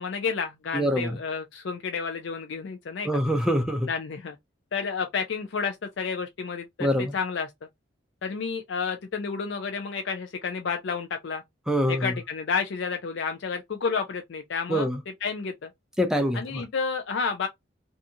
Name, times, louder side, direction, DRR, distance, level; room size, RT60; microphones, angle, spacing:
voice 1, 0.0-3.1 3.9-4.4 4.7-7.5 8.2-11.4 11.9-14.9 15.2-15.7 16.3-17.5, left 5 dB, 70° left, 0.4 m, -30 dB
voice 2, 0.7-1.2 3.0-3.9 6.8-7.2 11.7-12.1 14.7-15.0 16.0-16.6, equal, 5° right, 0.4 m, -25 dB
2.6 x 2.4 x 2.6 m
head